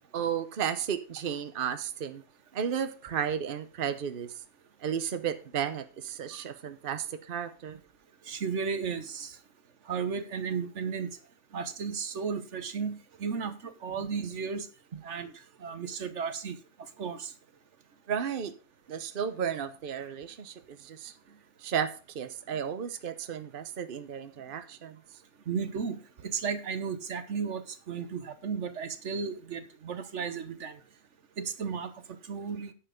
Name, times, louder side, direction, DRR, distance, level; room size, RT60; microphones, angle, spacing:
voice 1, 0.1-2.2 2.5-4.4 4.8-7.8 18.1-18.6 18.9-21.1 21.6-25.0, right 8 dB, 50° right, 1.0 m, -33 dB
voice 2, 8.3-9.4 9.9-11.1 11.5-14.7 15.0-15.3 15.6-16.6 17.0-17.3 25.5-30.8 31.4-31.9 32.3-32.7, right 6 dB, 85° right, 1.4 m, -34 dB
10.5 x 7.2 x 5.1 m
omnidirectional pair, 1.2 m